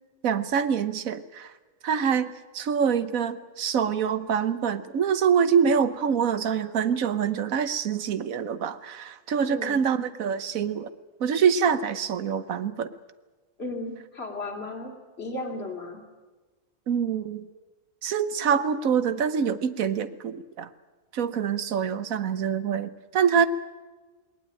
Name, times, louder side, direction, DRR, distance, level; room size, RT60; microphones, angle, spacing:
voice 1, 0.2-1.5 1.8-10.9 11.2-12.9 16.9-17.4 18.0-20.7 21.1-23.5, right 7 dB, 90° right, 13 dB, 1.4 m, -25 dB
voice 2, 9.5-9.9 13.6-16.0, left 2 dB, 50° left, 2 dB, 3.1 m, -35 dB
19.5 x 19.0 x 8.9 m, 1.3 s
omnidirectional pair, 1.4 m